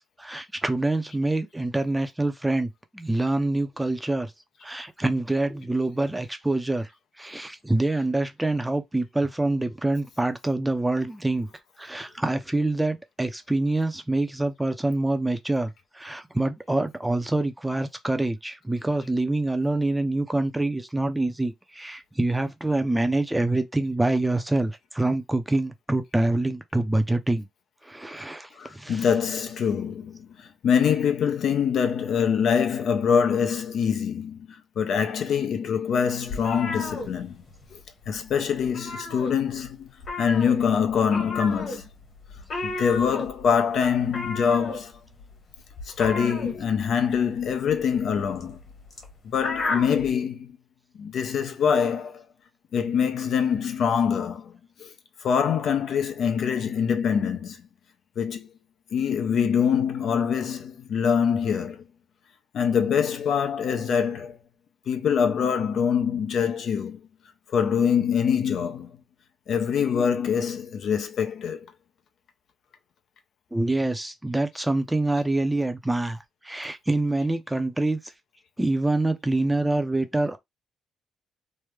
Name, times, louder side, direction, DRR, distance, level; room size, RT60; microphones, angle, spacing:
voice 1, 0.2-4.3 4.6-6.9 7.2-11.5 11.8-27.5 27.8-29.1 73.5-76.2 76.4-78.0 78.6-80.4, right 2 dB, 10° right, 0.5 m, -26 dB
voice 2, 28.6-34.5 34.8-37.4 37.7-37.8 38.1-41.9 42.6-44.9 45.9-48.6 49.3-50.6 50.9-52.2 52.7-54.5 54.8-54.9 55.2-57.6 58.2-58.5 58.9-61.9 62.5-64.4 64.9-67.0 67.5-69.0 69.5-71.7, left 7 dB, 65° left, 0.6 m, -24 dB
sound 1, 36.3-37.8 38.0-38.3 38.6-39.7 40.0-50.1, left 3 dB, 50° left, 1.6 m, -34 dB
3.2 x 2.1 x 3.4 m
cardioid pair, 90°, 0 cm